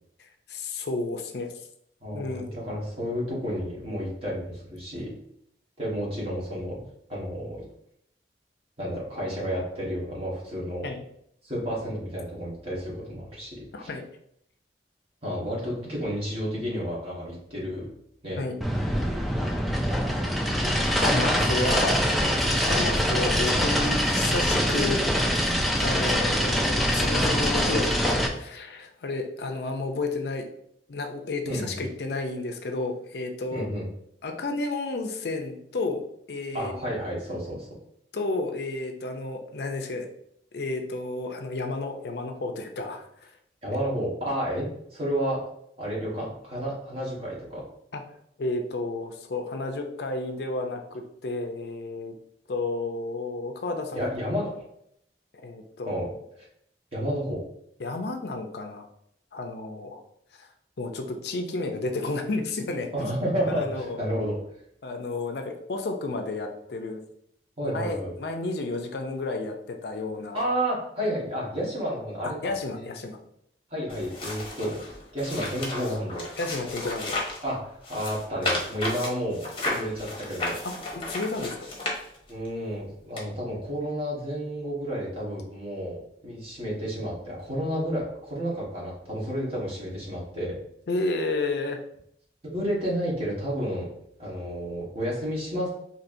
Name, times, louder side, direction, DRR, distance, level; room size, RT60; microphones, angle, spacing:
voice 1, 0.2-1.5 2.1-2.6 10.8-11.1 13.7-14.1 18.4-18.6 20.7-22.1 22.6-25.0 25.8-30.5 30.9-33.7 34.2-36.0 36.3-36.8 38.1-40.1 40.5-43.4 47.9-48.0 48.4-52.2 52.5-54.1 55.3-56.1 57.8-58.8 59.3-60.0 60.3-60.5 60.8-62.9 63.5-64.0 64.8-67.0 67.6-70.4 72.2-73.2 76.4-77.2 80.6-81.7 90.9-91.8, left 2 dB, 65° left, 5 dB, 0.5 m, -31 dB
voice 2, 2.0-5.1 5.8-6.8 7.1-7.6 8.8-10.9 11.4-13.5 13.8-13.9 15.2-17.9 18.2-18.4 18.7-18.8 22.7-22.9 31.5-31.8 33.5-33.9 36.5-37.7 43.6-44.6 44.9-45.4 45.8-47.6 53.9-54.5 55.9-56.0 56.4-56.5 56.9-57.4 62.9-64.3 67.6-68.1 70.3-72.3 72.7-72.9 73.7-74.8 75.1-76.2 77.4-80.6 82.3-90.6 92.4-93.9 94.2-95.7, equal, 35° right, -5 dB, 1.3 m, -31 dB
sound 1, 18.6-28.3, equal, ahead, 0.3 m, -24 dB
sound 2, 73.9-77.4 77.8-82.5 83.2-83.3, left 2 dB, 30° left, 0.8 m, -33 dB
4.3 x 2.8 x 2.6 m, 0.72 s
head